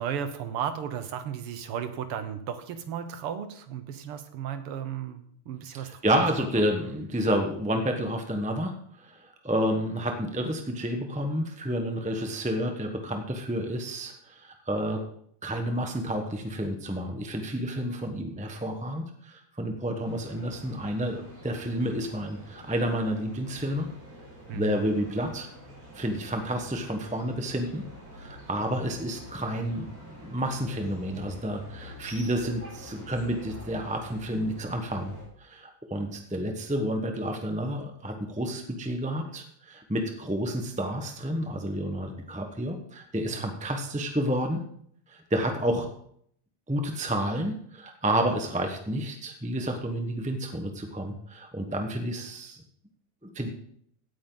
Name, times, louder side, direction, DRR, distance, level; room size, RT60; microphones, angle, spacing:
voice 1, 0.0-5.9 6.1-6.2 24.5-24.7 43.3-43.5, right 8 dB, 85° right, 10 dB, 2.0 m, -34 dB
voice 2, 5.7-8.7 9.0-15.0 15.4-23.9 24.5-25.5 25.9-27.8 28.2-29.9 30.2-35.1 35.4-44.6 45.1-45.9 46.7-52.6 53.3-53.5, equal, 5° right, 4 dB, 0.5 m, -30 dB
sound 1, 20.0-35.2, equal, 65° right, 5.3 m, -47 dB
16.5 x 9.1 x 3.9 m, 0.66 s
omnidirectional pair, 2.4 m